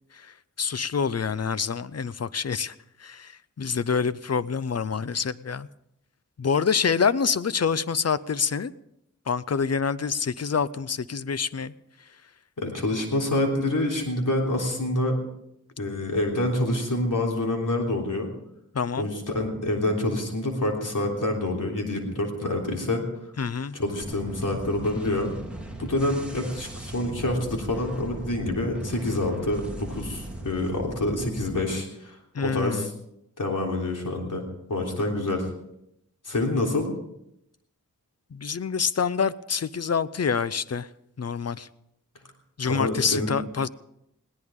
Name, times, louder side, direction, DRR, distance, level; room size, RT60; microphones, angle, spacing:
voice 1, 0.1-2.7 3.0-5.7 6.4-8.7 9.3-11.7 18.7-19.1 23.4-23.8 32.3-32.9 38.3-40.9 41.2-41.7 42.6-43.7, left 6 dB, 55° left, 16 dB, 0.6 m, -27 dB
voice 2, 12.6-15.1 15.8-18.3 19.0-23.0 23.7-25.3 25.8-32.9 33.4-34.4 34.7-35.5 36.2-36.9 42.6-43.4, left 1 dB, 80° left, 0 dB, 3.5 m, -27 dB
sound 1, 24.0-31.6, right 1 dB, 5° right, 3.2 m, -38 dB
20.5 x 17.5 x 3.7 m, 0.79 s
wide cardioid pair, 80°, 31 cm